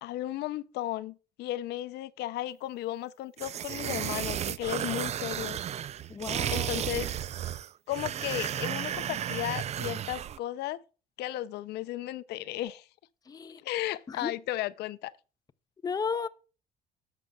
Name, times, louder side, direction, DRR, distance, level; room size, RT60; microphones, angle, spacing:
voice 1, 0.0-5.6 6.5-7.1 7.9-10.8 11.2-12.9 13.6-15.1, left 14 dB, 75° left, 0.5 m, -35 dB
sound 1, 3.4-10.4, right 10 dB, 40° right, 0.4 m, -33 dB
voice 2, 6.1-6.7 13.3-13.6 14.1-14.3 15.8-16.3, left 5 dB, 20° left, 0.5 m, -34 dB
12.0 x 7.6 x 2.3 m
cardioid pair, 110°, 17 cm